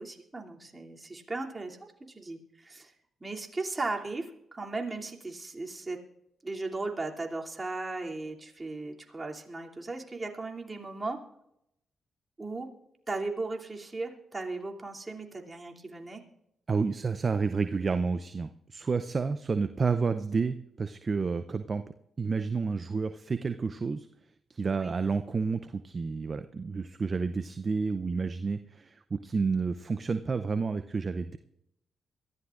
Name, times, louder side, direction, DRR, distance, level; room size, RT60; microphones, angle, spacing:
voice 1, 0.0-2.9 3.2-6.0 6.4-11.2 12.4-12.7 13.1-16.2 24.8-25.0, right 3 dB, 30° right, 0 dB, 2.9 m, -37 dB
voice 2, 16.7-21.8 22.2-24.1 24.5-31.4, right 4 dB, 45° right, 10 dB, 0.6 m, -30 dB
22.5 x 15.0 x 2.5 m, 0.78 s
supercardioid pair, 45°, 0 cm